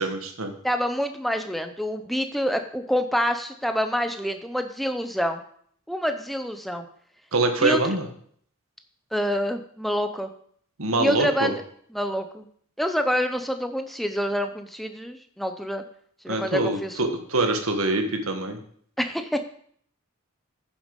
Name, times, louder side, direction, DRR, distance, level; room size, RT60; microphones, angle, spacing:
voice 1, 0.0-0.5 7.3-8.1 10.8-11.5 16.3-18.6, right 2 dB, 85° right, 6 dB, 1.6 m, -24 dB
voice 2, 0.6-5.4 5.9-6.8 7.6-7.9 9.1-10.3 11.0-11.6 11.9-12.5 12.8-15.8 16.2-17.0 19.0-19.5, equal, ahead, 7 dB, 0.8 m, -27 dB
10.5 x 7.3 x 5.3 m, 0.62 s
head